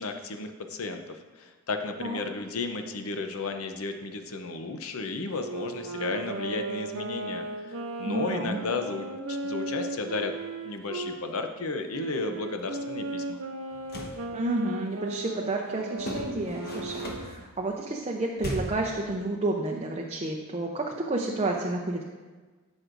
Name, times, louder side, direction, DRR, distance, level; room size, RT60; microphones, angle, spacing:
voice 1, 0.0-10.3 10.6-13.4, left 3 dB, 85° left, 6 dB, 0.7 m, -33 dB
Wind instrument woodwind instrument, 5.3-11.2 11.9-17.3, right 2 dB, 70° right, 0.7 m, -36 dB
voice 2, 8.1-8.6 14.3-22.0, right 2 dB, 30° right, 0 dB, 0.6 m, -30 dB
sound 1, 13.7-14.2 16.0-17.4 18.4-18.9, left 1 dB, 45° left, 1.1 m, -36 dB
14.0 x 6.2 x 2.6 m, 1.4 s
head